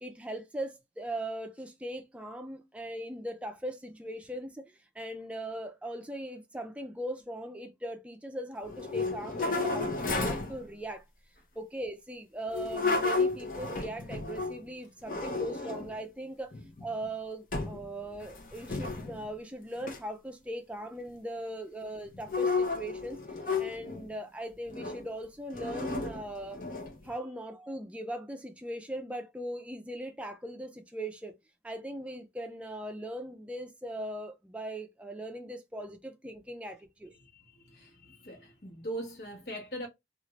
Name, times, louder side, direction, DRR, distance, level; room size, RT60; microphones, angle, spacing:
voice 1, 0.0-11.0 11.6-16.5 16.8-23.2 23.6-26.6 27.0-31.3 31.6-37.1, right 1 dB, 5° right, 0.4 m, -39 dB
sound 1, 8.7-10.6 12.5-14.6 15.1-16.0 16.5-17.1 17.5-17.9 18.1-19.3 19.8-20.0 22.1-24.1 24.7-25.1 25.5-27.1, left 3 dB, 50° left, 0.7 m, -32 dB
voice 2, 37.1-39.9, right 1 dB, 65° left, 1.1 m, -41 dB
2.6 x 2.4 x 3.0 m
head